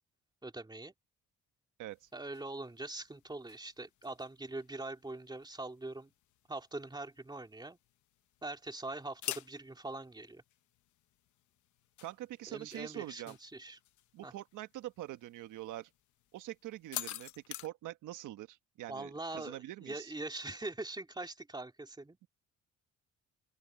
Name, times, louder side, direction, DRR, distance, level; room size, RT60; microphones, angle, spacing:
voice 1, 0.4-0.9 2.1-6.1 6.5-7.8 8.4-10.4 12.5-13.8 14.2-14.3 18.9-22.2, right 2 dB, 15° right, 2.9 m, -43 dB
voice 2, 1.8-2.1 12.0-13.4 14.1-15.9 16.3-20.1, right 15 dB, 85° right, 1.3 m, -44 dB
sound 1, 1.9-17.7, left 14 dB, 75° left, 0.9 m, -50 dB
open air
cardioid pair, 90°, 30 cm